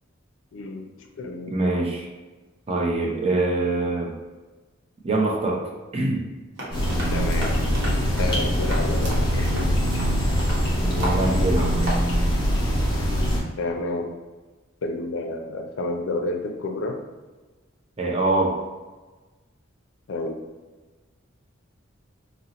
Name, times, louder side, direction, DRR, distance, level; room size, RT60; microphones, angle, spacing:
voice 1, 0.5-1.8 7.1-7.6 8.2-9.8 13.6-14.1 14.8-17.0 20.1-20.4, left 2 dB, 70° left, 3 dB, 0.4 m, -30 dB
voice 2, 1.5-2.1 2.7-4.1 5.0-5.6 5.9-6.3 10.8-11.7 18.0-18.5, right 2 dB, 30° right, -1 dB, 0.5 m, -24 dB
sound 1, 6.6-10.6 11.0-11.2 11.6-12.0, right 1 dB, 60° right, 0.9 m, -33 dB
sound 2, 6.7-13.4, equal, 25° left, 0.8 m, -23 dB
3.8 x 2.0 x 2.8 m, 1.2 s
head